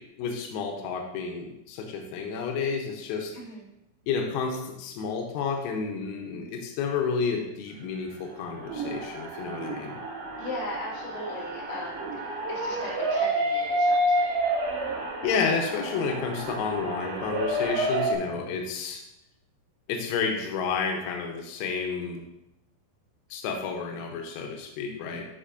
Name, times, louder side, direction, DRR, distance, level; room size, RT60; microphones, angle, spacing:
voice 1, 0.2-3.3 4.1-10.0 15.2-19.0 19.9-22.2 23.3-25.3, left 5 dB, 90° left, 2 dB, 3.6 m, -30 dB
sound 1, 8.3-18.1, right 1 dB, 70° right, 3.4 m, -29 dB
voice 2, 10.4-14.4, left 1 dB, 55° left, -7 dB, 4.2 m, -38 dB
12.5 x 5.4 x 2.5 m, 0.88 s
omnidirectional pair, 6.0 m